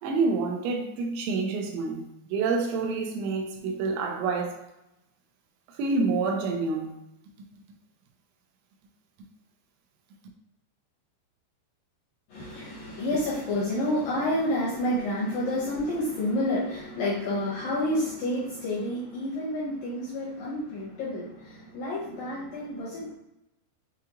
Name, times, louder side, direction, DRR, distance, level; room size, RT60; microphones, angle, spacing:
voice 1, 0.0-4.6 5.7-6.9, right 4 dB, 85° right, 2.9 m, -28 dB
voice 2, 12.3-23.1, left 1 dB, 75° left, 2.1 m, -29 dB
7.3 x 2.4 x 2.9 m
omnidirectional pair, 5.1 m